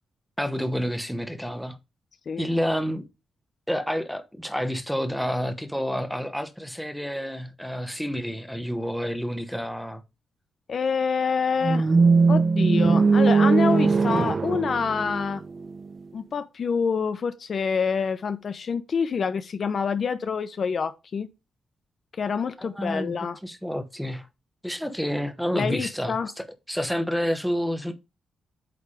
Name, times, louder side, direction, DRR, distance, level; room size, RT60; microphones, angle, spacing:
voice 1, 0.4-1.8 2.4-3.0 3.7-10.0 22.6-23.1 23.4-24.3 24.6-27.9, equal, ahead, 1.0 m, -29 dB
voice 2, 10.7-11.9 12.3-15.4 16.1-21.3 22.2-23.4 25.5-26.3, left 5 dB, 45° left, 0.7 m, -27 dB
sound 1, 11.6-15.7, right 4 dB, 30° right, 0.6 m, -20 dB
8.6 x 3.4 x 5.0 m
wide cardioid pair, 145°, 0 cm